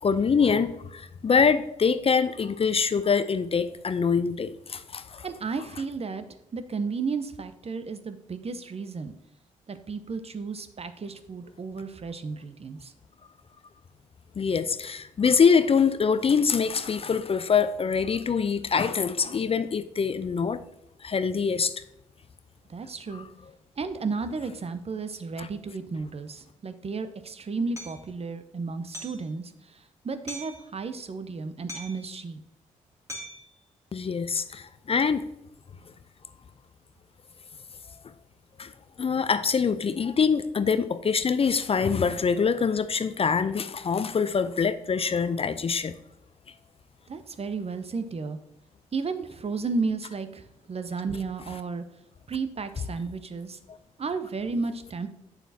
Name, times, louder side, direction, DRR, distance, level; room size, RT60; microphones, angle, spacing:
voice 1, 0.0-5.3 14.4-20.6 21.0-21.8 25.4-25.5 33.9-35.2 38.6-38.7 39.0-45.9 53.7-53.8, left 6 dB, 35° left, 13 dB, 0.5 m, -24 dB
voice 2, 5.2-6.2 6.5-9.1 9.7-12.9 22.7-23.3 23.8-32.4 47.1-48.4 48.9-51.8 52.3-53.6 54.0-55.1, right 4 dB, 40° right, 11 dB, 0.8 m, -33 dB
Hammer, 27.8-28.0 28.9-29.3 30.3-30.6 31.7-32.1 33.1-33.5, equal, 20° right, 2.5 m, -40 dB
8.3 x 7.1 x 2.8 m, 0.84 s
hypercardioid pair, 45°, 16 cm